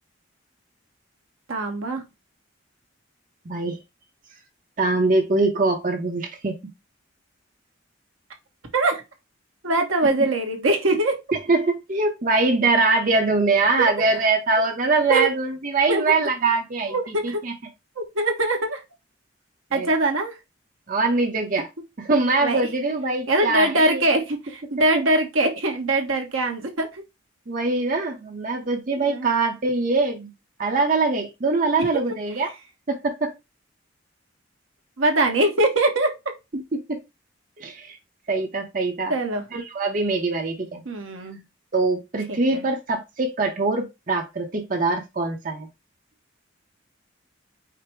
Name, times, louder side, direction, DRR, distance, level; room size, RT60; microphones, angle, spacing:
voice 1, 1.5-2.0 8.7-9.0 9.6-11.2 13.8-13.9 15.1-15.3 15.9-16.1 16.9-17.4 18.0-18.8 19.7-20.4 22.4-22.6 23.3-27.0 29.0-29.3 31.8-31.9 35.0-36.1 39.1-39.4 40.8-41.4 42.3-42.7, right 2 dB, 85° right, 3 dB, 1.1 m, -22 dB
voice 2, 3.5-3.8 4.8-6.5 11.5-17.5 19.7-19.9 20.9-21.7 22.0-24.0 27.5-30.3 30.6-32.5 32.9-33.3 36.5-37.0 37.6-38.0 38.3-39.1 39.5-40.8 41.7-45.7, right 3 dB, 40° right, 3 dB, 0.7 m, -23 dB
5.0 x 2.1 x 4.4 m, 0.23 s
head